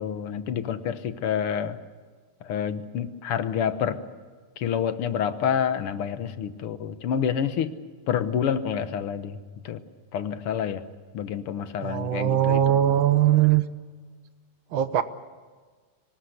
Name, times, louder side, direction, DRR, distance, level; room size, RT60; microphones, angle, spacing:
voice 1, 0.0-1.8 2.4-4.0 4.6-7.8 8.1-9.8 10.1-10.9 11.1-12.8, left 8 dB, 90° left, 11 dB, 2.1 m, -28 dB
voice 2, 11.8-13.6 14.7-15.0, right 11 dB, 70° right, 12 dB, 1.7 m, -21 dB
24.0 x 19.5 x 8.0 m, 1.5 s
omnidirectional pair, 2.4 m